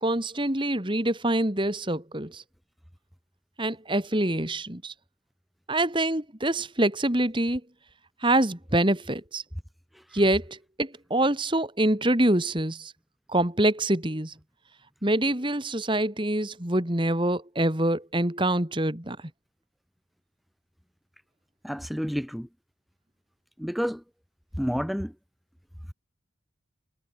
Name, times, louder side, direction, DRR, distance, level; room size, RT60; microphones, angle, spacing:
voice 1, 0.0-2.4 3.6-4.9 5.7-7.6 8.2-9.4 10.1-12.9 13.3-14.3 15.0-19.2, right 1 dB, 25° right, 2.4 m, -25 dB
voice 2, 21.6-22.5 23.6-24.0 24.6-25.1, equal, ahead, 2.1 m, -29 dB
head